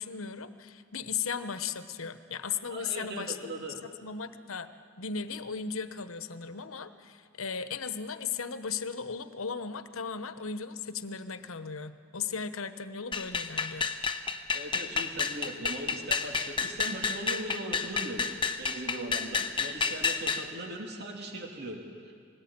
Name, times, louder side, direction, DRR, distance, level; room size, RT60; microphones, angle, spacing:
voice 1, 0.0-4.7 5.0-13.9, left 6 dB, 80° left, 11 dB, 1.0 m, -36 dB
voice 2, 2.7-3.8 14.5-18.3 18.6-22.1, right 1 dB, 50° right, 1 dB, 2.8 m, -39 dB
sound 1, 13.1-20.5, left 5 dB, 25° left, 0.9 m, -30 dB
21.0 x 19.0 x 8.8 m, 2.1 s
head